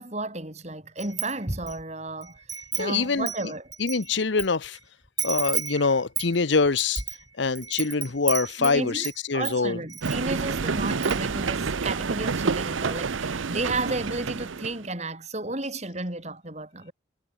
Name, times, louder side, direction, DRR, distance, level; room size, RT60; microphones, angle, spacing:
voice 1, 0.0-3.7 8.6-16.9, right 2 dB, 35° right, 3.5 m, -33 dB
Wind chime, 1.0-1.8 2.2-4.5 4.7-4.8 5.2-9.2 9.4-10.2 10.5-10.6 10.9-11.3, right 7 dB, 20° right, 1.3 m, -33 dB
voice 2, 2.7-3.5 3.8-4.8 5.2-7.0 7.4-9.8, left 4 dB, 70° left, 0.9 m, -24 dB
sound 1, 10.0-14.9, right 4 dB, 85° right, 0.7 m, -28 dB
head